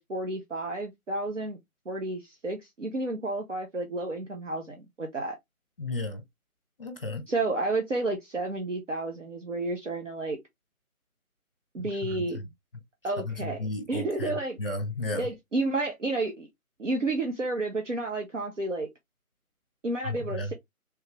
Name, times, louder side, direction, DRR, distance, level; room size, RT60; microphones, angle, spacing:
voice 1, 0.0-1.6 1.9-5.4 7.3-10.4 11.7-12.4 13.0-14.6 15.1-16.5 16.8-18.9 19.8-20.5, right 2 dB, 55° right, 0.9 m, -31 dB
voice 2, 5.8-6.2 6.8-7.2 11.8-12.3 13.2-14.3 14.6-15.3 20.0-20.5, left 2 dB, 40° left, 1.0 m, -33 dB
3.6 x 2.9 x 3.2 m
figure-of-eight pair, 165°, 44 cm